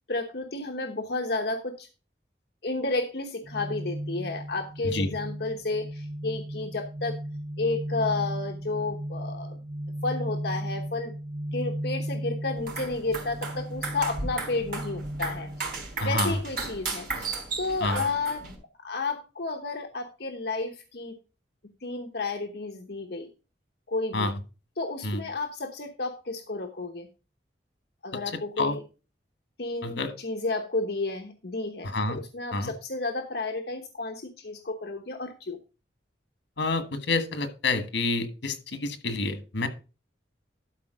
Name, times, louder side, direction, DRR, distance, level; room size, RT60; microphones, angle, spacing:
voice 1, 0.1-1.9 2.6-7.2 7.6-9.6 10.0-11.1 11.5-15.7 16.0-17.3 17.6-18.4 18.8-21.1 21.8-23.3 23.9-24.3 24.8-27.1 28.0-28.8 29.6-35.6, left 3 dB, 60° left, 4 dB, 1.0 m, -32 dB
sound 1, 3.4-16.5, right 1 dB, 30° right, 0.7 m, -36 dB
sound 2, 12.6-18.6, right 3 dB, 55° right, 3.8 m, -35 dB
voice 2, 16.0-16.4 17.8-18.0 24.1-24.3 25.0-25.2 28.6-28.8 29.8-30.1 31.8-32.2 32.5-32.7 36.6-39.7, left 2 dB, 80° left, 10 dB, 1.4 m, -28 dB
12.0 x 4.4 x 5.0 m, 0.32 s
head